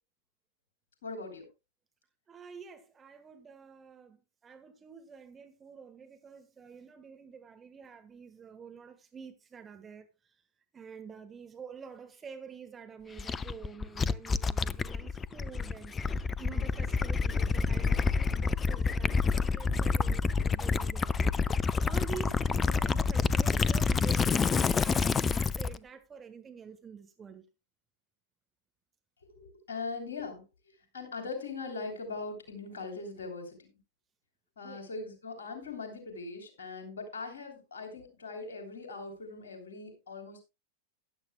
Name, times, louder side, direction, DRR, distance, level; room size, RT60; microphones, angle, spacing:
voice 1, 1.0-1.4 29.3-30.4 30.9-33.7 34.6-40.4, left 4 dB, 65° left, 3.2 m, -40 dB
voice 2, 2.3-4.2 4.4-10.1 10.7-27.4 34.6-34.8, right 6 dB, 20° right, 1.3 m, -48 dB
Gurgling / Liquid, 13.2-25.8, left 5 dB, 20° left, 0.5 m, -28 dB
15.0 x 11.5 x 2.2 m
figure-of-eight pair, 90°, 0 cm